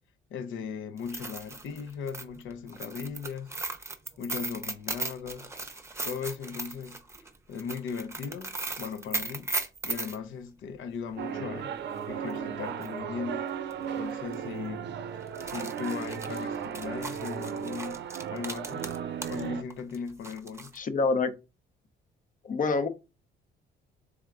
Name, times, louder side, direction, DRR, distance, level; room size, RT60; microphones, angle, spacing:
voice 1, 0.3-3.5 3.8-5.5 6.0-7.0 7.5-9.5 9.8-11.7 12.1-13.5 14.0-14.9 15.4-18.0 18.3-18.8 19.3-20.7, left 6 dB, 80° left, 0.7 m, -38 dB
sound 1, 1.0-10.2 12.3-12.4 12.8-12.9 13.7-13.9 14.2-14.3 15.2-19.4 19.7-20.8, right 3 dB, 15° right, 0.7 m, -37 dB
sound 2, 11.2-19.6, right 8 dB, 65° right, 0.6 m, -35 dB
voice 2, 20.7-21.3 22.4-22.9, left 4 dB, 40° left, 0.7 m, -26 dB
3.6 x 3.4 x 3.6 m
cardioid pair, 90°, 20 cm